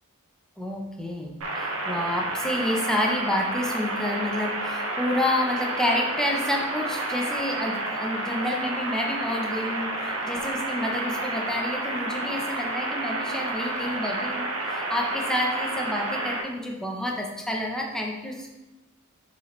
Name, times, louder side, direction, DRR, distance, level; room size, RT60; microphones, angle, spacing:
voice 1, 0.6-18.5, left 1 dB, 5° left, -1 dB, 0.8 m, -29 dB
sound 1, 1.4-16.4, right 2 dB, 85° right, 0.9 m, -30 dB
7.3 x 4.1 x 3.2 m, 1.0 s
head